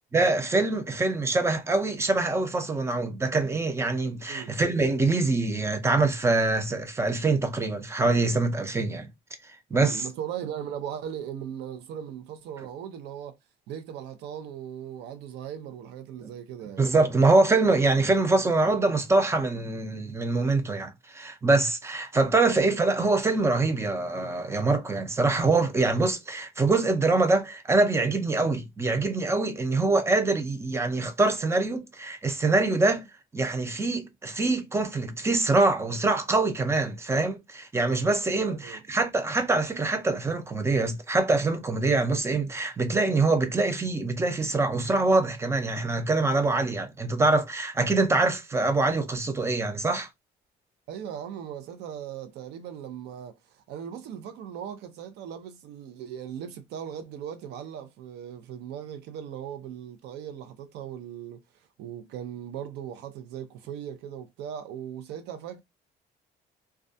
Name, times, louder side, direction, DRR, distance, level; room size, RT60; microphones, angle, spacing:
voice 1, 0.1-9.1 9.7-10.1 16.2-16.3 16.8-33.1 33.3-50.1, right 3 dB, 15° right, 0.5 m, -24 dB
voice 2, 4.2-4.5 9.7-13.4 13.7-16.9 38.4-38.8 50.9-61.4 61.8-65.6, right 9 dB, 80° right, 0.5 m, -38 dB
2.3 x 2.2 x 2.6 m
cardioid pair, 110°, 17 cm